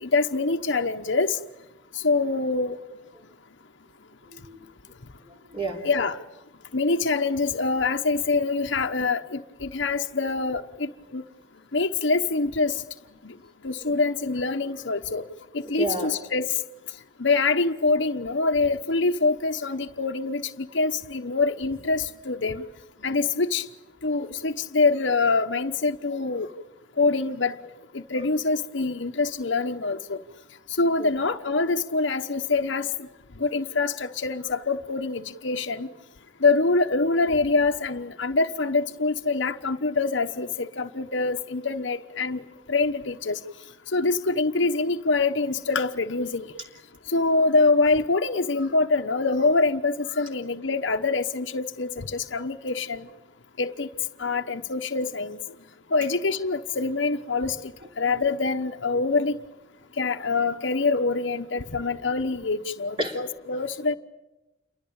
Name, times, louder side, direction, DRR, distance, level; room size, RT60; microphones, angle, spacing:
voice 1, 0.0-1.4 1.9-2.8 5.8-6.1 6.7-11.2 11.7-12.8 13.2-13.3 13.6-15.2 15.5-16.5 17.2-22.6 23.0-23.6 24.0-26.5 27.0-27.6 27.9-30.2 30.8-32.9 33.4-35.9 36.4-42.4 42.7-43.4 43.9-46.5 47.1-53.1 53.6-53.9 54.2-55.4 55.9-57.6 58.0-59.4 60.0-63.9, left 3 dB, 65° left, 5 dB, 1.0 m, -25 dB
voice 2, 4.3-4.6 5.2-5.8 13.8-13.9 15.7-16.1 28.1-28.2 31.0-31.1 63.0-63.2, right 2 dB, 25° right, 1 dB, 3.4 m, -31 dB
29.0 x 23.5 x 8.8 m, 0.99 s
head